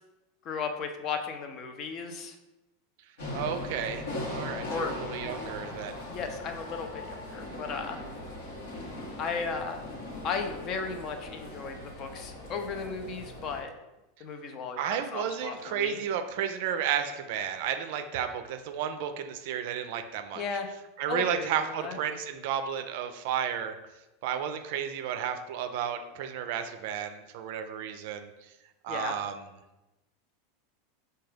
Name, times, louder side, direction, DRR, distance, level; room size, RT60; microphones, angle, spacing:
voice 1, 0.5-2.4 4.7-4.9 6.1-8.0 9.2-9.9 10.2-13.7 14.2-14.8 15.1-16.0 20.3-20.7 21.1-22.0 28.9-29.1, left 5 dB, 45° left, 6 dB, 0.5 m, -35 dB
sound 1, 3.2-13.6, left 2 dB, 80° left, 1.0 m, -39 dB
voice 2, 3.3-6.0 14.8-20.4 21.0-23.8 24.2-28.3 28.8-29.5, right 8 dB, 65° right, 8 dB, 0.3 m, -32 dB
4.6 x 2.2 x 3.2 m, 1.0 s
hypercardioid pair, 105°, 0 cm